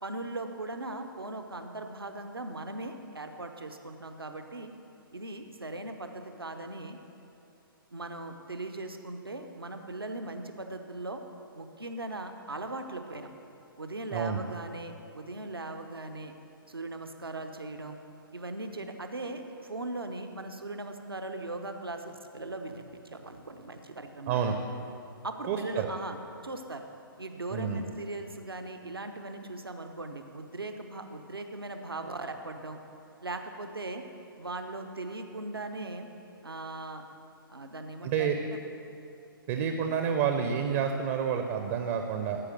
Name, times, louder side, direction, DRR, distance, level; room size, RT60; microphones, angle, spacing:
voice 1, 0.0-4.7 5.1-7.0 7.9-11.2 11.5-13.3 13.8-16.3 16.7-18.0 18.3-24.4 25.2-26.2 26.4-26.8 27.2-32.8 33.2-34.0 34.4-36.1 36.4-37.0 37.5-38.3, right 2 dB, 80° right, 6 dB, 0.8 m, -39 dB
voice 2, 24.3-24.6 25.5-25.9 27.5-27.8 38.0-38.4 39.5-42.4, right 7 dB, 30° right, 6 dB, 0.6 m, -29 dB
13.5 x 5.0 x 6.4 m, 2.7 s
figure-of-eight pair, 125°, 12 cm